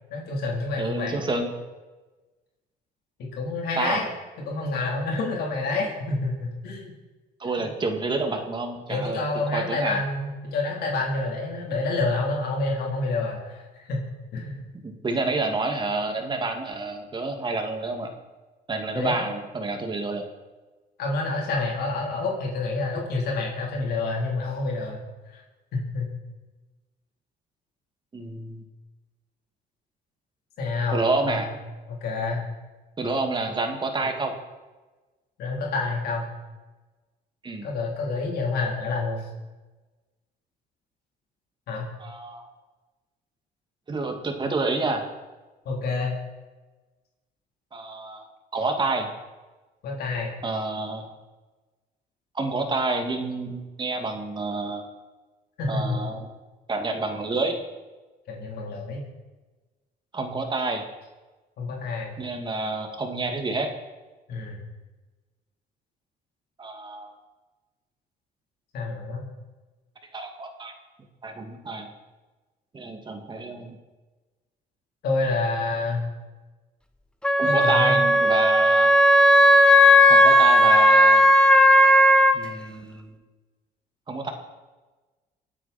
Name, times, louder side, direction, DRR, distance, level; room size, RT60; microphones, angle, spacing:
voice 1, 0.1-1.2 3.2-4.1 4.5-6.9 7.6-7.7 8.9-14.0 14.3-14.6 18.9-19.3 21.0-25.0 25.3-25.4 25.7-26.1 30.6-31.5 31.9-32.5 35.4-36.3 37.6-39.3 41.7-41.9 45.7-46.2 49.8-50.3 55.6-56.0 58.3-59.0 61.6-62.1 64.3-64.6 68.7-69.3 75.0-76.0 77.4-78.0, left 3 dB, 70° left, -1 dB, 3.7 m, -28 dB
voice 2, 0.8-1.5 3.8-4.0 7.4-9.2 9.5-10.0 14.8-18.1 18.7-20.2 28.1-28.6 30.9-31.5 33.0-34.3 37.4-37.7 42.0-42.5 43.9-45.0 47.7-49.1 50.4-51.0 52.3-54.8 55.7-56.3 56.7-57.6 60.1-60.8 62.2-63.7 66.6-67.2 70.1-70.7 71.2-71.9 72.7-73.8 77.4-78.9 80.1-81.2 82.3-83.2 84.1-84.3, right 3 dB, 25° right, 4 dB, 2.3 m, -28 dB
Wind instrument woodwind instrument, 77.2-82.3, equal, 5° left, 1.2 m, -15 dB
26.5 x 9.1 x 4.4 m, 1.2 s
cardioid pair, 110°, 17 cm